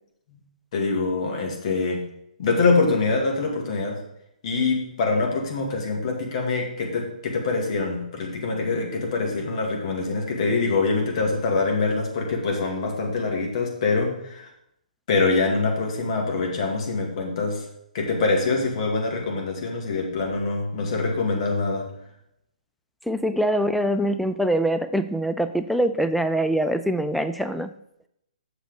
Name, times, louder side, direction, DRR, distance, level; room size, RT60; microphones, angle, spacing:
voice 1, 0.7-2.0 2.4-4.0 4.4-14.5 15.1-17.6 17.9-21.9, left 3 dB, 45° left, 0 dB, 2.2 m, -24 dB
voice 2, 23.1-27.7, right 1 dB, ahead, 9 dB, 0.4 m, -24 dB
7.9 x 6.3 x 5.0 m, 0.77 s
figure-of-eight pair, 130°, 4 cm